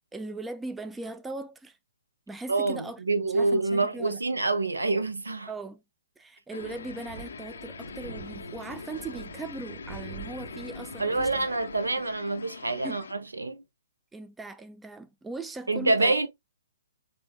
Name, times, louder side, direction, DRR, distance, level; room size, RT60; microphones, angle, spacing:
voice 1, 0.1-1.8 2.3-3.0 3.3-4.2 5.5-5.8 6.2-11.5 12.8-13.0 14.1-16.1, right 2 dB, 10° right, 0.4 m, -39 dB
voice 2, 2.5-5.5 11.0-13.6 15.7-16.3, right 3 dB, 85° right, 0.8 m, -26 dB
sound 1, 6.5-13.1, left 6 dB, 70° left, 0.4 m, -43 dB
Wind, 6.6-12.2, right 6 dB, 60° right, 1.1 m, -45 dB
6.9 x 2.6 x 2.3 m
figure-of-eight pair, 130°, 0 cm